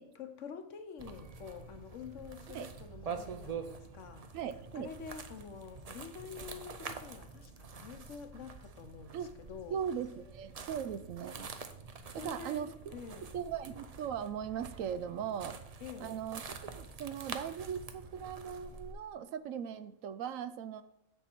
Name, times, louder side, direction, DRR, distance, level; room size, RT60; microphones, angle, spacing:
voice 1, 0.1-4.3 4.7-9.8 12.1-13.3 15.8-16.2, left 7 dB, 65° left, 8 dB, 1.1 m, -48 dB
sound 1, 1.0-18.9, right 5 dB, 45° right, 0.5 m, -46 dB
voice 2, 4.3-4.9 9.1-9.3 9.7-11.5 12.1-15.6 16.0-20.8, right 8 dB, 80° right, 12 dB, 1.0 m, -39 dB
7.3 x 6.8 x 4.4 m, 0.85 s
omnidirectional pair, 1.4 m